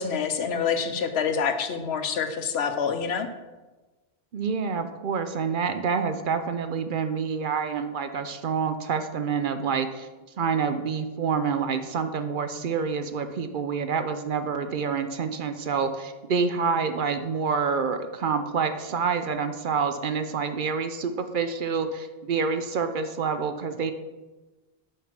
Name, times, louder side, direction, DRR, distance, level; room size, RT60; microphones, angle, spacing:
voice 1, 0.0-3.3, left 6 dB, 80° left, 8 dB, 1.0 m, -27 dB
voice 2, 4.3-10.1 10.4-23.9, right 5 dB, 60° right, 8 dB, 0.7 m, -27 dB
6.4 x 4.9 x 5.9 m, 1.2 s
omnidirectional pair, 1.1 m